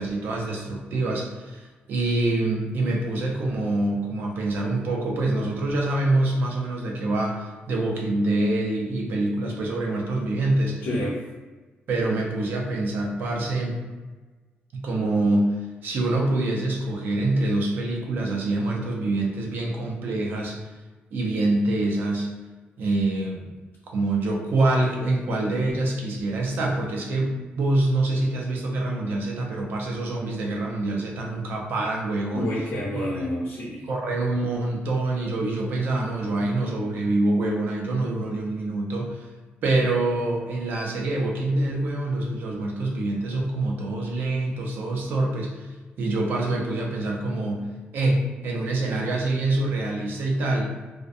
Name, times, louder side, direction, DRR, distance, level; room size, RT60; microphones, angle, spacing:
voice 1, 0.0-10.8 11.9-13.8 14.7-15.6 15.8-20.7 21.1-22.3 22.8-23.5 23.9-32.5 32.9-33.1 33.9-39.2 39.6-45.7 46.0-47.6 47.9-50.7, right 2 dB, 60° right, -1 dB, 0.5 m, -25 dB
voice 2, 10.8-11.3 32.3-33.9, left 1 dB, 70° left, -8 dB, 0.6 m, -29 dB
2.5 x 2.1 x 2.5 m, 1.3 s
wide cardioid pair, 170°, 4 cm